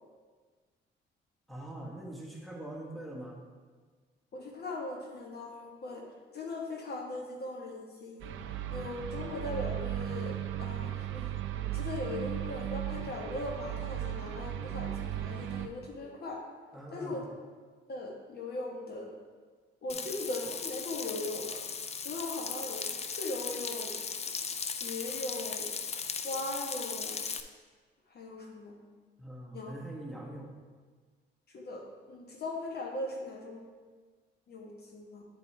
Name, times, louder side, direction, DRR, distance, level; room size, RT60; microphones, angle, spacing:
voice 1, 1.5-3.4 16.7-17.3 19.9-20.0 29.2-30.5, right 1 dB, ahead, -2 dB, 1.2 m, -43 dB
voice 2, 4.3-6.1 6.3-8.3 8.7-11.3 11.6-16.4 16.9-17.2 17.9-19.2 19.8-21.6 22.0-24.0 24.2-24.3 24.8-25.7 26.2-27.2 28.1-28.8 29.5-29.7 31.5-33.6 34.5-35.2, left 2 dB, 55° left, 0 dB, 1.2 m, -39 dB
sound 1, 8.2-15.7, right 12 dB, 85° right, 0.5 m, -36 dB
Frying (food), 19.9-27.4, left 6 dB, 35° left, 0.4 m, -37 dB
9.7 x 4.4 x 3.2 m, 1.5 s
cardioid pair, 90°, 20 cm